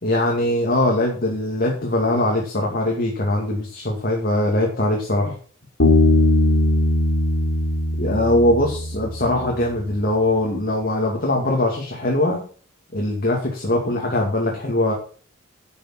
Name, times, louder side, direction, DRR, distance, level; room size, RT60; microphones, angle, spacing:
voice 1, 0.0-5.4 8.0-12.4 12.9-14.9, left 1 dB, 45° left, 0 dB, 2.3 m, -21 dB
Bass guitar, 5.8-9.3, left 1 dB, 65° left, 3.5 m, -19 dB
12.0 x 6.4 x 5.9 m, 0.42 s
head